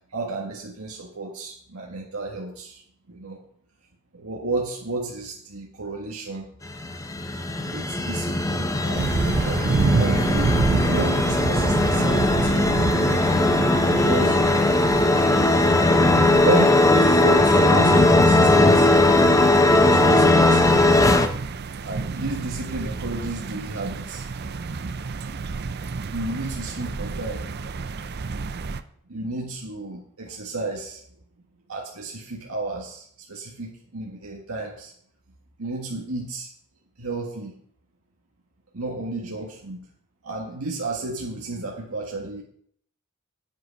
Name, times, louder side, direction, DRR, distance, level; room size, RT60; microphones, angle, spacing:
voice 1, 0.1-2.8 3.1-3.4 4.1-6.5 7.6-10.5 10.8-12.7 14.0-14.6 16.4-18.9 19.7-20.9 21.8-24.3 25.2-25.4 26.1-27.4 29.1-31.0 31.7-34.9 35.6-36.5 37.0-37.5 38.7-39.9 40.2-42.4, right 2 dB, 85° right, -1 dB, 1.6 m, -32 dB
sound 1, 6.6-21.3, left 2 dB, 15° left, 0.7 m, -19 dB
sound 2, 8.9-28.8, right 4 dB, 50° right, 0.5 m, -29 dB
9.3 x 8.7 x 5.4 m, 0.65 s
head